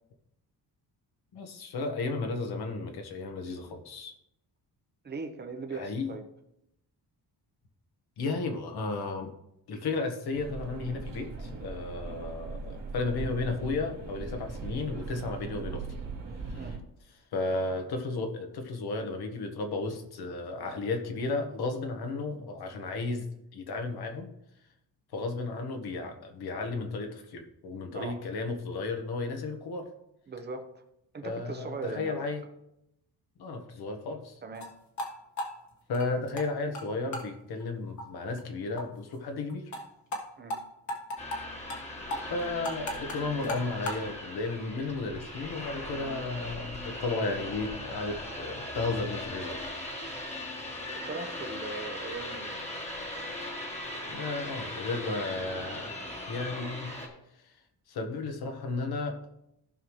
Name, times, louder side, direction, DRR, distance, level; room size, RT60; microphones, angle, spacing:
voice 1, 1.3-4.1 5.7-6.1 8.2-9.3 9.7-16.0 16.5-16.6 17.3-23.3 23.5-24.3 25.1-29.9 31.2-32.4 33.4-34.4 35.9-39.7 42.3-49.6 54.1-55.9 56.3-56.9 57.4-57.5 57.9-59.2, left 3 dB, 70° left, 4 dB, 1.5 m, -34 dB
voice 2, 5.0-6.2 16.6-16.8 27.9-28.2 30.3-30.8 31.1-32.2 34.4-34.7 40.4-40.6 51.0-52.6, right 3 dB, 25° right, 6 dB, 0.9 m, -39 dB
sound 1, 10.3-16.8, right 4 dB, 55° right, 2.2 m, -39 dB
sound 2, 34.5-34.7 35.0-35.1 35.4-36.5 36.7-36.8 37.1-37.3 37.6-37.7 38.0-38.1 38.4-38.5 38.8-38.9 39.1-39.2 39.5-39.8 40.1-40.2 40.5-40.6 40.9-41.4 41.7-41.8 42.1-44.0, left 1 dB, 45° left, 1.7 m, -35 dB
sound 3, 41.2-57.1, left 1 dB, 15° left, 1.5 m, -39 dB
15.0 x 5.7 x 3.2 m, 0.82 s
cardioid pair, 160°, 40 cm